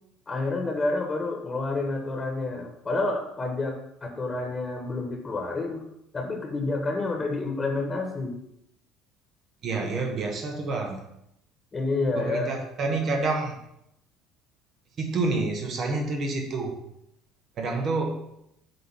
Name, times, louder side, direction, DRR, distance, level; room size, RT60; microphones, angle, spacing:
voice 1, 0.3-5.8 6.1-8.3 11.7-12.5, left 3 dB, 25° left, 2 dB, 1.5 m, -29 dB
voice 2, 9.6-11.0 12.2-13.6 15.0-16.8 17.6-18.2, right 3 dB, 45° right, 2 dB, 1.3 m, -28 dB
9.2 x 3.7 x 5.7 m, 0.78 s
figure-of-eight pair, 60°, 0 cm